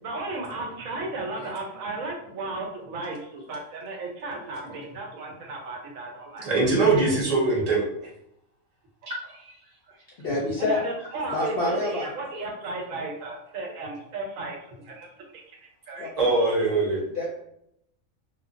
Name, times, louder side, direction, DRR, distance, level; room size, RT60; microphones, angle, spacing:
voice 1, 0.0-6.5 9.9-10.0 10.3-15.6 15.9-16.1, right 2 dB, 85° right, 1 dB, 1.1 m, -34 dB
voice 2, 6.4-7.8 16.2-17.0, right 3 dB, 40° right, -2 dB, 0.6 m, -22 dB
voice 3, 10.2-10.8 11.3-12.1 16.0-16.1 17.1-17.4, left 2 dB, 60° left, -3 dB, 0.7 m, -27 dB
3.0 x 2.2 x 2.4 m, 0.77 s
omnidirectional pair, 1.4 m